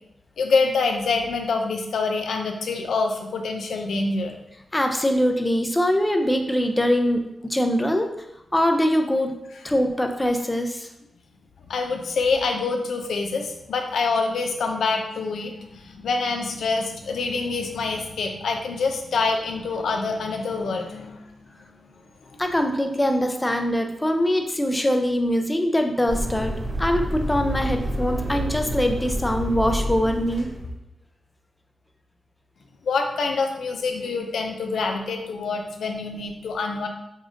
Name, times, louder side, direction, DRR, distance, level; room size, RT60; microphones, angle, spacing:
voice 1, 0.4-4.3 11.7-21.3 21.6-21.9 22.3-22.4 32.8-36.9, left 4 dB, 85° left, 3 dB, 0.4 m, -26 dB
voice 2, 4.7-8.1 8.5-9.4 9.6-10.9 22.4-30.5, equal, 15° left, 5 dB, 0.5 m, -23 dB
sound 1, 26.1-30.7, equal, 45° right, 0.9 m, -28 dB
5.0 x 2.4 x 2.6 m, 0.84 s
cardioid pair, 65°, 0 cm